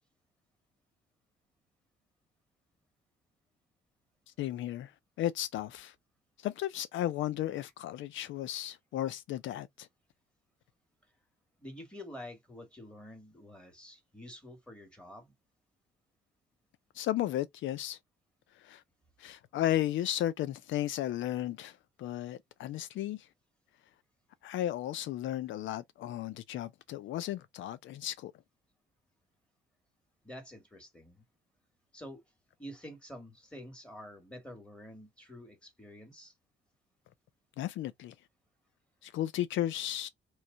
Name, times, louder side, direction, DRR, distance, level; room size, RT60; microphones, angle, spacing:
voice 1, 4.4-4.9 5.2-5.9 6.4-9.9 16.9-18.0 18.6-18.8 19.2-23.3 24.4-28.3 37.6-38.1 39.0-40.1, left 13 dB, 75° left, 0.4 m, -34 dB
voice 2, 11.6-15.3 30.2-31.2 31.9-32.2 32.6-36.3, left 1 dB, 5° left, 1.9 m, -48 dB
3.1 x 3.1 x 3.7 m
cardioid pair, 90°, 20 cm